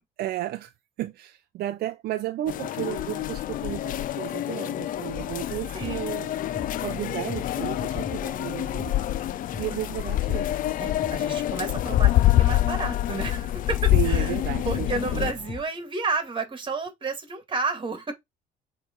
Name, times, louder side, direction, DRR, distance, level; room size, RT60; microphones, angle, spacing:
voice 1, 0.2-0.7 1.0-6.4 6.8-8.9 9.6-10.5 13.9-15.3, right 14 dB, 70° right, 0.5 m, -33 dB
sound 1, 2.5-15.3, left 14 dB, 55° left, 0.4 m, -26 dB
sound 2, 5.1-15.6, left 6 dB, 35° left, 1.1 m, -39 dB
voice 2, 10.8-14.3 14.6-18.1, right 4 dB, 30° right, 2.2 m, -31 dB
7.3 x 3.4 x 4.6 m
cardioid pair, 110°, 17 cm